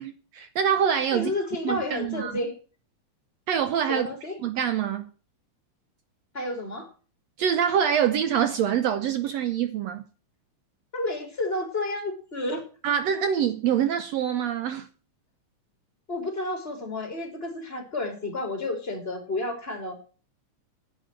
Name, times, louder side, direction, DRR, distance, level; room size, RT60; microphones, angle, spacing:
voice 1, 0.0-1.3 1.6-2.4 3.5-4.1 4.4-5.1 7.4-10.0 12.8-14.9, right 8 dB, 70° right, 1.8 m, -25 dB
voice 2, 1.1-2.5 3.9-4.4 6.3-6.9 10.9-12.6 16.1-20.1, left 2 dB, 20° left, 3.5 m, -31 dB
10.5 x 7.4 x 8.9 m
omnidirectional pair, 3.4 m